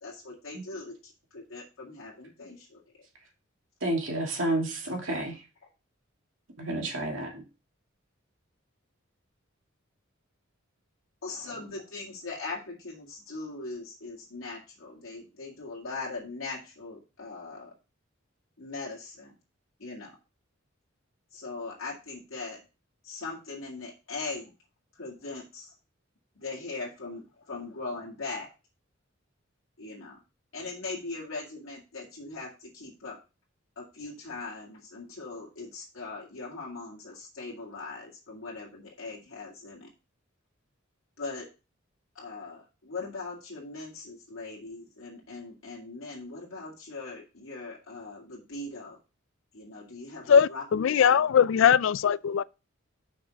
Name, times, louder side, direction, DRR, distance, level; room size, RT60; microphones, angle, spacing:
voice 1, 0.0-2.8 11.2-17.7 18.6-19.3 19.8-20.2 21.3-22.6 23.0-24.5 24.9-25.7 26.3-28.5 29.8-30.2 30.5-33.2 33.8-39.9 41.2-41.5 42.1-49.0 49.5-51.5, left 3 dB, 90° left, 2.2 m, -40 dB
voice 2, 3.8-5.4 6.6-7.4, right 1 dB, 70° right, 2.5 m, -30 dB
voice 3, 50.3-52.4, left 7 dB, 70° left, 0.3 m, -21 dB
6.1 x 6.0 x 5.0 m
head